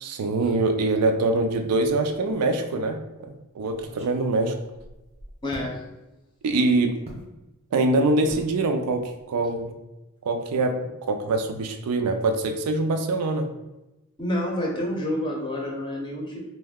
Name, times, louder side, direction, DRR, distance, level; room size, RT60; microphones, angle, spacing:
voice 1, 0.0-4.5 6.4-6.9 7.7-9.7 10.2-13.5, right 2 dB, 90° right, 5 dB, 0.4 m, -24 dB
sound 1, 1.8-2.4 2.8-2.9 3.7-5.7 7.0-7.3 8.3-8.5 8.9-9.2 9.5-9.6, equal, 30° right, 0.5 m, -43 dB
voice 2, 5.4-5.8 14.2-16.4, left 1 dB, 20° left, -2 dB, 0.6 m, -28 dB
2.6 x 2.1 x 3.5 m, 0.99 s
head